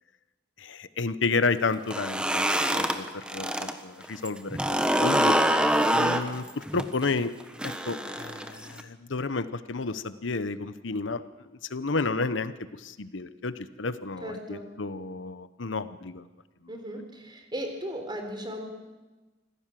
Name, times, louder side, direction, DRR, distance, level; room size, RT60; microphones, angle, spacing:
voice 1, 0.6-4.6 5.0-5.4 5.9-7.3 7.6-11.2 11.7-16.3, left 3 dB, 80° left, 13 dB, 0.9 m, -31 dB
sound 1, 1.8-3.7 4.0-8.8, right 1 dB, 5° right, 1.3 m, -25 dB
voice 2, 14.2-14.7 16.7-18.7, equal, 25° right, 4 dB, 4.0 m, -37 dB
25.5 x 16.0 x 7.6 m, 1.2 s
head